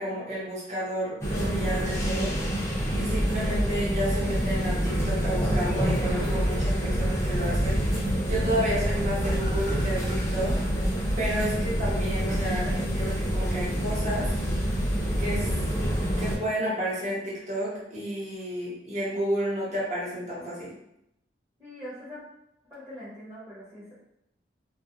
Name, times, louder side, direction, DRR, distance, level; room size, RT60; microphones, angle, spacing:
voice 1, 0.0-2.3 2.9-7.8 8.2-10.6 11.2-14.3 15.2-15.5 16.2-20.7, equal, 40° right, -8 dB, 0.9 m, -31 dB
sound 1, 1.2-16.4, equal, 15° left, 0.5 m, -27 dB
voice 2, 21.6-22.2 22.7-24.0, equal, 15° right, -11 dB, 0.8 m, -42 dB
2.3 x 2.0 x 2.7 m, 0.81 s
head